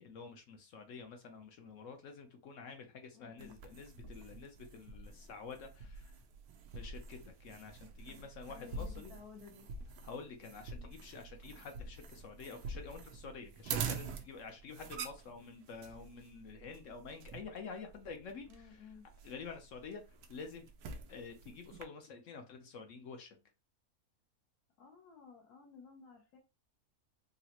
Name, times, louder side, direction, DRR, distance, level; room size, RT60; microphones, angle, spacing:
voice 1, 0.0-6.0 6.7-8.9 10.0-18.5 19.2-20.0 20.3-20.6 21.1-23.3, left 5 dB, 65° left, 0.9 m, -48 dB
voice 2, 3.1-3.6 8.0-9.7 18.5-19.0 24.8-26.4, left 6 dB, 80° left, 1.3 m, -55 dB
sound 1, 3.4-21.8, right 5 dB, 90° right, 1.1 m, -46 dB
3.9 x 2.1 x 2.8 m
omnidirectional pair, 1.5 m